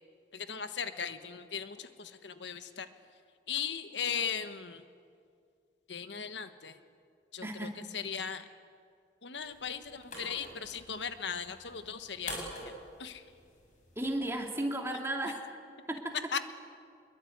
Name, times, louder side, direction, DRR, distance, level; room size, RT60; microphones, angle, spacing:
voice 1, 0.3-2.9 3.5-4.8 5.9-6.8 7.3-8.4 9.2-12.7 13.0-13.2 16.3-16.4, left 7 dB, 85° left, 10 dB, 1.3 m, -38 dB
voice 2, 7.4-7.8 14.0-15.4 15.9-16.3, right 1 dB, 15° right, 2 dB, 2.7 m, -34 dB
sound 1, 9.4-14.4, left 1 dB, 45° left, 7.3 m, -47 dB
25.0 x 22.5 x 9.4 m, 2.2 s
head